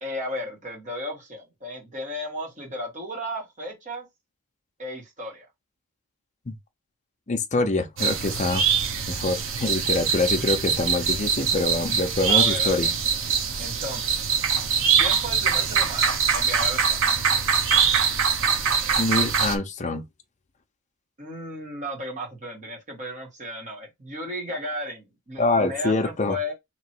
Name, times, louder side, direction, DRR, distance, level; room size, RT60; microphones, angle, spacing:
voice 1, 0.0-4.1 4.8-5.5 12.3-12.9 13.6-14.2 14.9-17.0 21.2-26.5, left 1 dB, 35° right, 1.7 m, -34 dB
voice 2, 7.3-8.6 9.1-12.9 19.0-20.0 25.4-26.4, left 2 dB, 35° left, 0.6 m, -25 dB
sound 1, 8.0-19.6, right 6 dB, 60° right, 0.8 m, -23 dB
3.0 x 2.9 x 4.4 m
head